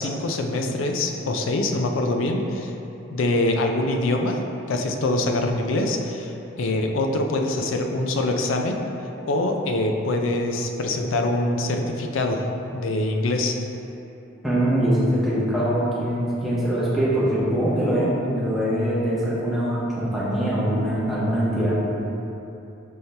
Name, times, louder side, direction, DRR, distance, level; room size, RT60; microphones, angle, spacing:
voice 1, 0.0-2.7 3.1-4.4 4.7-8.8 9.3-12.5 12.7-13.6, left 2 dB, 80° left, 3 dB, 0.4 m, -24 dB
voice 2, 14.4-21.7, right 1 dB, ahead, -9 dB, 0.8 m, -23 dB
5.4 x 2.8 x 3.3 m, 2.9 s
head